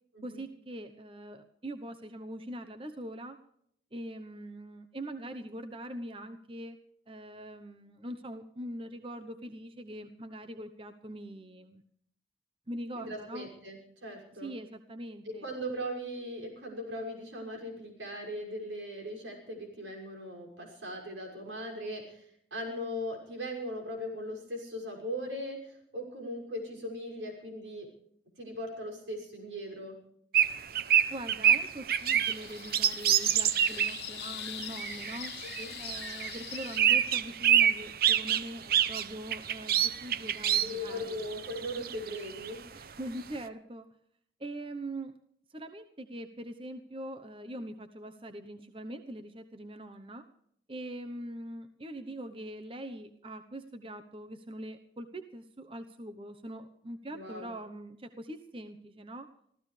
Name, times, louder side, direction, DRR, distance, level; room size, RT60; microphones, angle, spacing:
voice 1, 0.2-3.4 3.9-6.8 7.1-11.8 12.7-13.5 14.4-15.5 31.1-35.3 35.8-41.2 42.7-43.9 44.4-45.2 45.5-50.3 50.7-59.3, right 1 dB, 30° right, 8 dB, 0.9 m, -42 dB
voice 2, 12.9-14.5 15.2-22.3 22.5-27.9 28.4-30.0 35.4-35.7 40.6-42.6 57.1-57.5, equal, 85° right, 1 dB, 6.1 m, -39 dB
sound 1, 30.3-34.0 34.4-42.5, right 9 dB, 50° right, 0.7 m, -27 dB
sound 2, 31.9-36.8, left 13 dB, 60° left, 0.8 m, -43 dB
25.5 x 15.5 x 3.3 m, 0.69 s
head